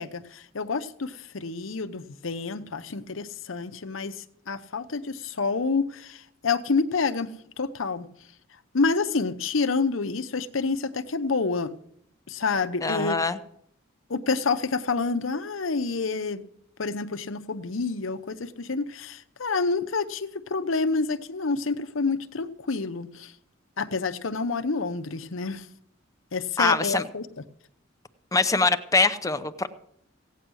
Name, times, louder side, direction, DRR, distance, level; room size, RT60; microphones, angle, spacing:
voice 1, 0.0-4.2 4.5-7.3 7.6-8.1 8.7-11.7 12.3-13.2 14.1-16.4 16.8-23.3 23.8-25.7 26.3-27.3, left 4 dB, 80° left, 10 dB, 0.9 m, -28 dB
voice 2, 12.8-13.4 26.6-27.0 28.3-29.7, left 3 dB, 15° left, 9 dB, 0.7 m, -23 dB
16.5 x 9.2 x 6.3 m, 0.71 s
head